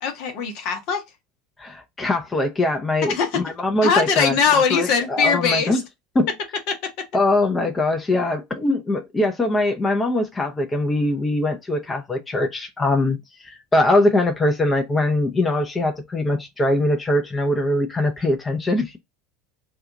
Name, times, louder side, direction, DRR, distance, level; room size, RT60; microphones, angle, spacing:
voice 1, 0.0-1.0 3.0-3.4 3.8-5.8, left 6 dB, 55° left, 0.9 m, -21 dB
voice 2, 1.6-5.8 6.1-6.3 7.1-19.0, left 2 dB, 20° left, 0.6 m, -22 dB
2.7 x 2.4 x 3.6 m
figure-of-eight pair, 75°, 0 cm